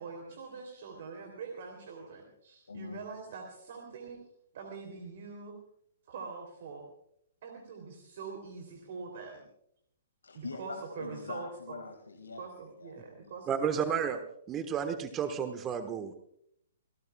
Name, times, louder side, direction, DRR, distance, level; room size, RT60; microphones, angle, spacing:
voice 1, 0.0-4.2 4.5-5.6 6.1-6.8 7.4-9.4 10.3-11.8 12.4-13.8, right 5 dB, 55° right, 2 dB, 3.1 m, -44 dB
voice 2, 2.7-3.0 10.2-12.5 12.8-13.3, left 4 dB, 80° left, 6 dB, 2.0 m, -44 dB
voice 3, 13.5-14.2 14.5-16.1, right 7 dB, 25° right, 8 dB, 1.3 m, -32 dB
28.5 x 17.0 x 2.3 m, 0.72 s
figure-of-eight pair, 120°, 0 cm